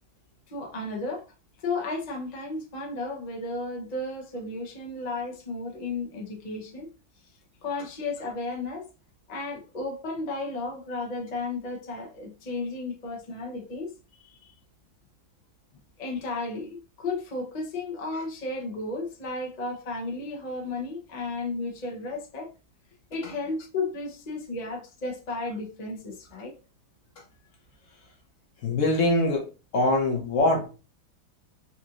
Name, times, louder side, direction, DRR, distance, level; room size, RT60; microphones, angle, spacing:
voice 1, 0.5-1.3 1.6-6.9 7.6-8.9 9.3-14.5 16.0-22.5 23.1-26.6, left 3 dB, 75° left, 0.3 m, -33 dB
voice 2, 28.6-29.5 29.7-30.7, left 2 dB, 55° left, 0.8 m, -23 dB
4.2 x 2.8 x 2.4 m
omnidirectional pair, 2.2 m